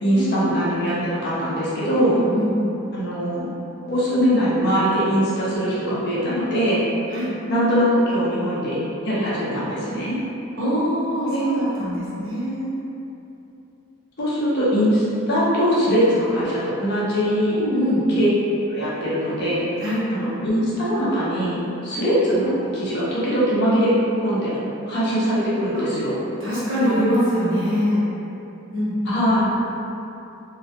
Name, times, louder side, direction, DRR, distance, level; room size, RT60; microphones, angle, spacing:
voice 1, 0.0-2.2 2.9-3.5 3.9-6.8 7.5-10.2 11.3-11.5 14.2-17.6 18.1-18.3 18.7-19.7 20.1-24.5 24.9-26.2 29.0-29.5, equal, 45° left, -9 dB, 0.6 m, -21 dB
voice 2, 2.1-2.5 7.1-7.3 10.6-12.7 17.5-18.0 19.8-20.0 25.7-25.8 26.4-28.1 28.7-29.2, equal, 55° right, -10 dB, 0.8 m, -23 dB
2.3 x 2.1 x 2.6 m, 2.9 s
head